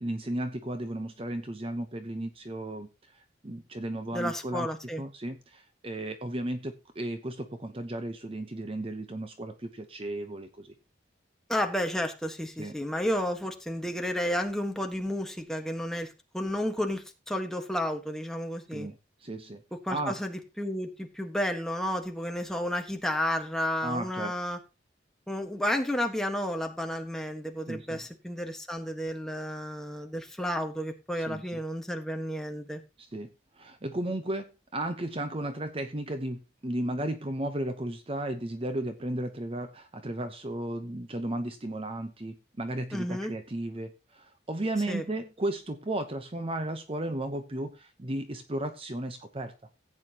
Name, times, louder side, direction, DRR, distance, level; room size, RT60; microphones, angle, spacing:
voice 1, 0.0-2.9 3.4-4.7 5.0-10.7 12.6-12.7 18.7-18.9 19.2-19.6 19.9-20.1 23.8-24.3 27.7-28.0 31.2-31.4 33.1-33.3 33.6-49.5, right 1 dB, 30° right, 8 dB, 0.8 m, -34 dB
voice 2, 4.1-5.0 11.5-18.9 19.8-24.6 25.3-32.8 42.9-43.3 44.9-45.0, equal, 5° left, 4 dB, 1.4 m, -32 dB
15.0 x 8.6 x 2.9 m, 0.28 s
head